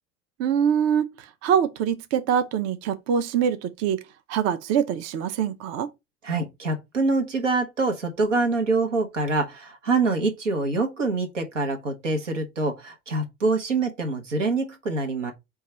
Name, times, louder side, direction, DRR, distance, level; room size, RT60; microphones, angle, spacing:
voice 1, 0.4-1.1 1.4-4.0 4.3-5.9, right 8 dB, 45° right, 0.6 m, -24 dB
voice 2, 6.2-15.3, right 3 dB, 90° right, 0.9 m, -25 dB
4.6 x 2.3 x 4.1 m
hypercardioid pair, 75°, 36 cm